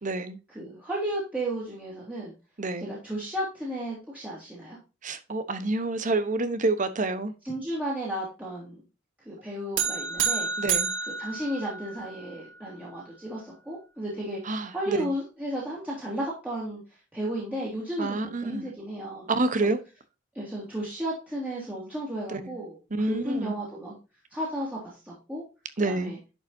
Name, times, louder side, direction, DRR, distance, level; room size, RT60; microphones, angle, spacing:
voice 1, 0.0-0.4 2.6-2.9 5.0-7.3 10.6-10.9 14.4-15.1 18.0-18.7 19.3-19.8 22.3-22.6 22.9-23.5 25.8-26.1, right 2 dB, 40° right, 1.0 m, -28 dB
voice 2, 0.5-2.3 2.8-4.8 7.4-8.8 9.3-10.5 11.2-14.4 14.7-16.8 17.1-19.3 19.6-19.7 20.3-24.0 24.3-25.4 25.8-26.2, right 1 dB, 10° right, 2.8 m, -33 dB
sound 1, 9.8-12.2, right 6 dB, 80° right, 1.7 m, -29 dB
11.0 x 5.3 x 2.7 m
head